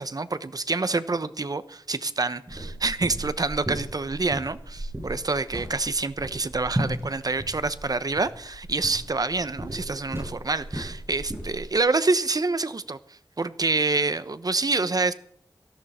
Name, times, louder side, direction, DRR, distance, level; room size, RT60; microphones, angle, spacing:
voice 1, 0.0-15.1, right 3 dB, 50° right, 14 dB, 1.0 m, -27 dB
sound 1, 2.5-11.8, right 1 dB, 30° right, 7.5 m, -35 dB
18.5 x 14.0 x 4.3 m, 0.64 s
wide cardioid pair, 85°, 8 cm